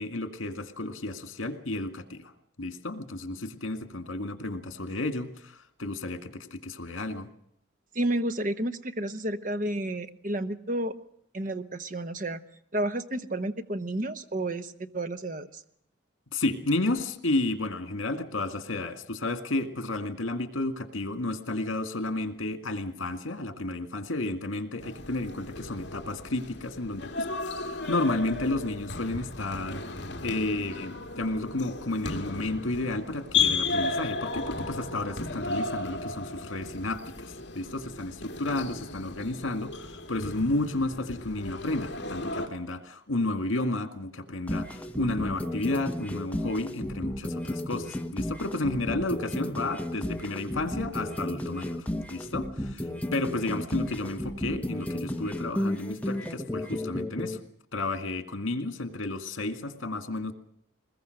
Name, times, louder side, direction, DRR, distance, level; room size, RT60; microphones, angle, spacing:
voice 1, 0.0-2.3 2.6-7.3 16.3-27.3 27.6-57.4 57.7-60.3, left 2 dB, 85° left, 8 dB, 2.1 m, -32 dB
voice 2, 7.9-10.9 11.3-12.4 12.7-15.6, right 1 dB, 40° right, 10 dB, 1.0 m, -31 dB
sound 1, 24.8-42.5, left 4 dB, 60° left, 2.2 m, -34 dB
sound 2, 44.5-57.4, left 1 dB, 5° left, 1.1 m, -33 dB
22.0 x 20.5 x 6.6 m, 0.73 s
head